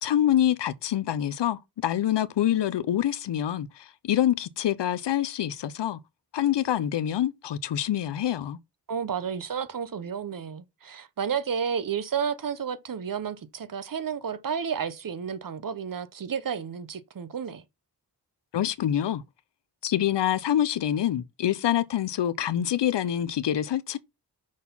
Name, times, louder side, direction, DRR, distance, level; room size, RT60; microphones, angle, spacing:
voice 1, 0.0-6.0 6.3-8.6 18.5-19.2 19.8-24.0, left 11 dB, 85° left, 0.7 m, -26 dB
voice 2, 8.9-17.6, right 7 dB, 55° right, 0.9 m, -31 dB
6.3 x 4.2 x 5.5 m
cardioid pair, 75°, 41 cm